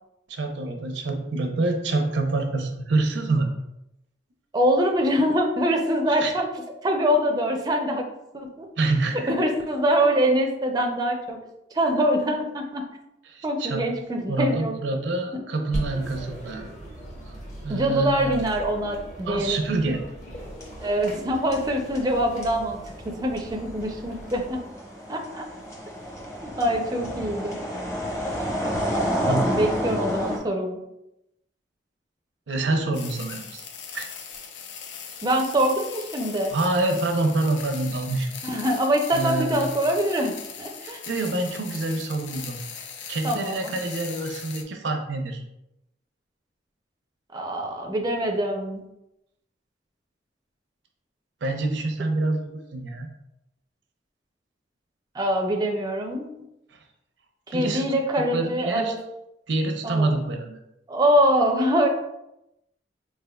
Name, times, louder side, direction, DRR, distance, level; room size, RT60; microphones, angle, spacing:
voice 1, 0.3-3.5 6.2-6.3 8.8-9.3 13.3-13.8 14.3-16.6 17.6-18.4 19.3-20.0 29.3-29.4 32.5-33.7 33.9-34.1 36.5-38.3 39.1-39.7 40.8-42.6 43.1-45.4 51.4-53.1 56.7-56.8 57.5-57.9 58.3-58.9 59.5-60.6, right 2 dB, 85° right, 4 dB, 0.6 m, -26 dB
voice 2, 4.5-6.5 6.8-8.1 8.3-8.7 9.3-11.4 11.7-12.8 13.4-14.7 15.3-15.4 17.7-19.6 20.8-22.8 23.0-24.6 25.1-25.5 26.4-27.6 29.3-30.8 35.2-36.5 38.4-41.0 43.2-43.7 47.3-48.8 55.1-56.4 57.5-59.0 59.8-60.2 60.9-61.9, equal, 20° right, 3 dB, 0.4 m, -24 dB
sound 1, 15.7-24.6, right 1 dB, 45° left, 1.1 m, -39 dB
sound 2, 20.4-21.3 21.5-30.4, equal, 20° left, 0.8 m, -30 dB
sound 3, 32.9-44.6, left 7 dB, 75° left, 0.5 m, -40 dB
4.4 x 3.4 x 2.2 m, 0.86 s
head